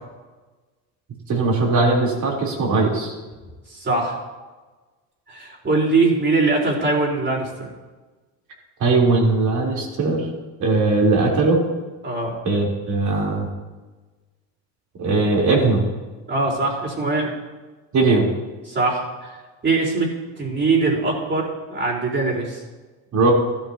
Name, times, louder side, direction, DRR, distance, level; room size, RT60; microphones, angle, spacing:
voice 1, 1.3-3.2 8.8-10.3 10.6-11.6 12.4-13.5 15.0-15.8 17.9-18.3 23.1-23.3, right 3 dB, 50° right, -2 dB, 3.7 m, -19 dB
voice 2, 3.7-4.2 5.3-7.7 12.0-12.3 16.3-17.3 18.7-19.4 19.6-20.1 20.4-22.6, right 3 dB, 30° right, -2 dB, 4.3 m, -22 dB
14.5 x 12.5 x 2.9 m, 1.2 s
supercardioid pair, 100°, 37 cm